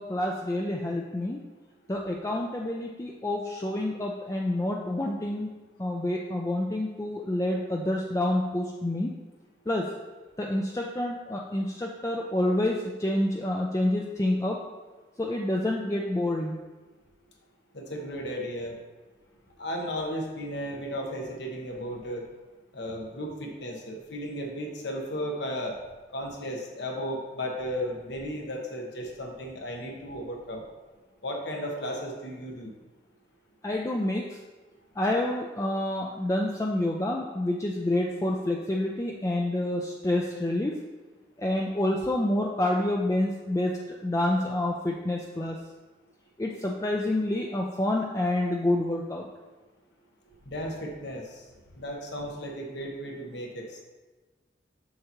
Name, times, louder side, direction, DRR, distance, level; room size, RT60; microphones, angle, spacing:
voice 1, 0.0-1.4 1.9-5.5 5.8-9.1 9.7-9.9 10.4-14.6 15.2-16.6 33.6-34.4 35.0-40.7 41.4-45.6 46.4-49.3, left 1 dB, 15° left, -1 dB, 0.4 m, -28 dB
voice 2, 17.7-18.8 19.6-22.3 22.7-25.8 26.1-30.6 31.2-32.7 50.4-51.4 51.7-53.8, equal, 70° left, 1 dB, 1.2 m, -35 dB
6.8 x 6.5 x 3.0 m, 1.2 s
head